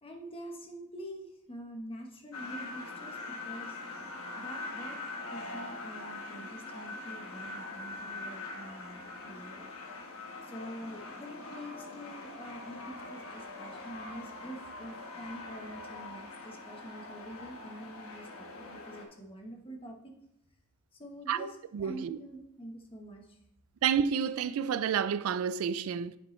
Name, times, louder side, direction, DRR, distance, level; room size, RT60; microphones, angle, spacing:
voice 1, 0.0-3.9 4.4-5.0 5.3-9.7 10.4-20.1 21.0-23.4, right 1 dB, 25° left, 1.1 m, -46 dB
sound 1, 2.3-19.1, left 3 dB, 80° left, 1.2 m, -43 dB
voice 2, 21.7-22.2 23.8-26.2, right 7 dB, 80° right, 0.3 m, -30 dB
9.1 x 5.3 x 3.2 m
head